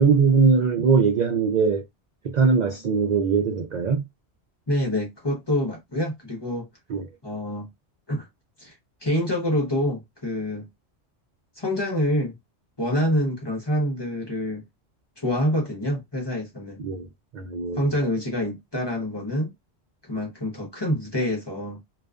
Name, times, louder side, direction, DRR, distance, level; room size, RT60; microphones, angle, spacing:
voice 1, 0.0-1.8 2.2-4.0 6.9-7.0 16.8-17.1 17.3-17.9, right 5 dB, 60° right, 0.4 m, -21 dB
voice 2, 4.7-6.7 7.2-7.7 8.1-8.3 8.6-8.7 9.0-10.7 11.6-12.4 12.8-14.6 15.2-16.8 17.8-19.5 20.0-21.8, left 1 dB, 25° left, 0.7 m, -26 dB
2.4 x 2.2 x 2.3 m
omnidirectional pair, 1.2 m